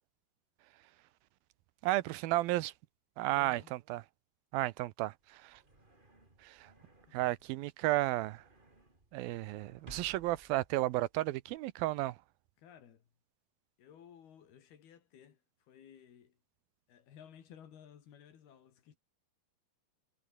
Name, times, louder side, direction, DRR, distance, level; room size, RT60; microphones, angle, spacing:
voice 1, 1.8-2.7 3.2-4.0 4.5-5.6 6.4-6.7 7.1-8.4 9.1-12.2, right 16 dB, 80° right, 2.4 m, -33 dB
voice 2, 3.3-3.7 7.1-7.2 12.6-13.1 13.8-15.4 15.7-16.4 16.9-19.0, left 9 dB, 80° left, 4.7 m, -56 dB
sound 1, 5.2-11.6, right 2 dB, 15° right, 3.2 m, -60 dB
omnidirectional pair, 4.4 m